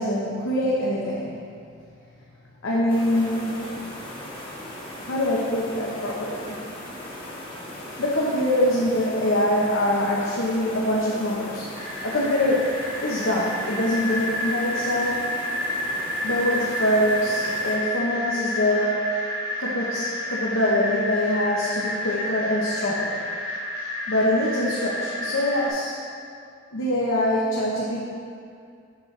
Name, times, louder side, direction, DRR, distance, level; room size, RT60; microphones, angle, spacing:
voice 1, 0.0-1.3 2.6-3.6 5.0-6.6 8.0-11.6 12.0-12.7 13.0-15.3 16.2-19.1 19.6-23.2 24.1-25.9 26.7-28.0, left 1 dB, 80° left, -6 dB, 0.9 m, -24 dB
sound 1, 2.9-17.8, left 1 dB, 25° left, 1.2 m, -38 dB
sound 2, 11.7-25.7, left 1 dB, 50° right, 1.6 m, -30 dB
7.0 x 6.4 x 3.3 m, 2.4 s
head